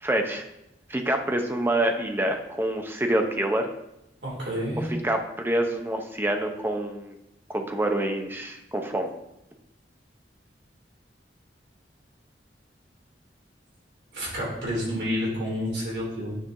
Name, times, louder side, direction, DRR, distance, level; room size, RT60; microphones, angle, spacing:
voice 1, 0.0-0.4 0.9-3.7 4.8-7.1 7.5-9.1, right 1 dB, 15° right, 4 dB, 0.7 m, -26 dB
voice 2, 4.2-4.9 14.1-16.4, equal, 70° right, -4 dB, 3.0 m, -29 dB
9.1 x 4.4 x 3.7 m, 0.86 s
head